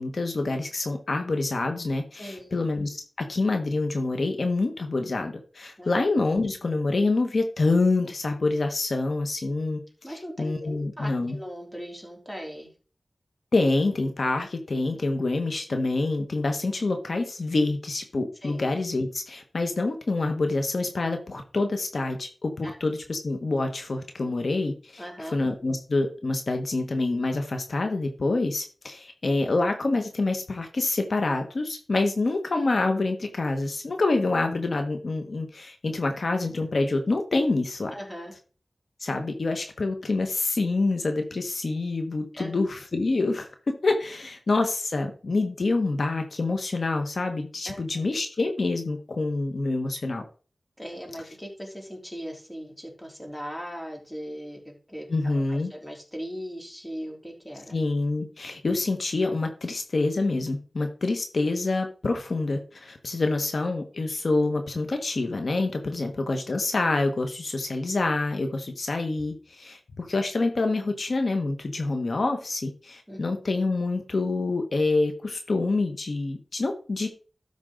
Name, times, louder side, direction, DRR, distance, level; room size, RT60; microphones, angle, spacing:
voice 1, 0.0-3.0 3.3-9.8 10.1-11.4 13.5-37.9 39.0-50.2 55.1-55.7 57.7-77.1, left 3 dB, 75° left, 5 dB, 1.3 m, -26 dB
voice 2, 2.2-2.5 5.8-5.9 10.0-12.7 18.4-18.6 22.6-22.7 25.0-25.4 37.9-38.3 42.3-42.5 47.6-48.0 50.8-57.7 73.1-73.2, equal, 10° left, 1 dB, 3.4 m, -39 dB
13.0 x 5.3 x 3.8 m, 0.38 s
cardioid pair, 50°, 0 cm